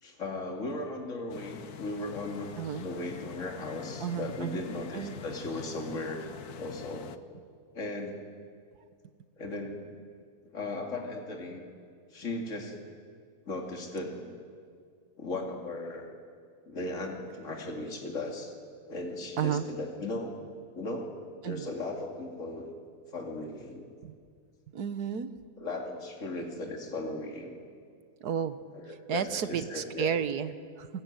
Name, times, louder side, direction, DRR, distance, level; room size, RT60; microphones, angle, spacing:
voice 1, 0.0-2.5 2.8-6.3 6.6-7.1 7.7-8.3 9.4-9.9 10.5-11.6 12.1-12.7 13.5-14.4 15.2-16.1 16.7-18.5 18.9-20.4 20.7-21.2 21.4-22.7 23.1-23.9 25.6-27.6 28.7-30.1, left 2 dB, 55° left, 1 dB, 2.9 m, -37 dB
sound 1, 1.3-7.2, left 9 dB, 80° left, 1.5 m, -45 dB
voice 2, 4.0-4.6 4.9-5.1 19.4-19.6 21.4-21.7 24.0-24.1 24.7-25.3 28.2-28.6 29.1-30.9, right 8 dB, 85° right, 12 dB, 1.7 m, -32 dB
28.0 x 19.5 x 9.3 m, 2.1 s
omnidirectional pair, 1.6 m